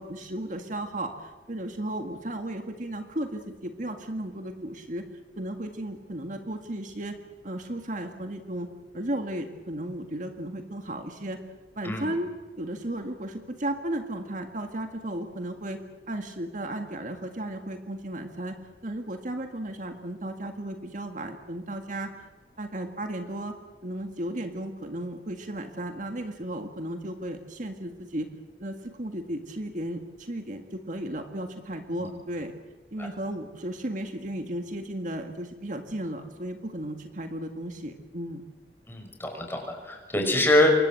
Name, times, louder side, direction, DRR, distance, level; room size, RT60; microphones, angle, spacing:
voice 1, 0.0-5.0 5.4-7.2 7.4-8.7 8.9-11.4 11.8-15.8 16.1-18.6 18.8-22.3 22.6-23.6 23.8-28.3 28.6-32.5 32.9-38.4 40.1-40.4, right 1 dB, 45° right, 5 dB, 1.9 m, -34 dB
voice 2, 38.9-40.7, left 1 dB, 15° left, 3 dB, 6.0 m, -24 dB
27.5 x 24.0 x 7.7 m, 1.4 s
head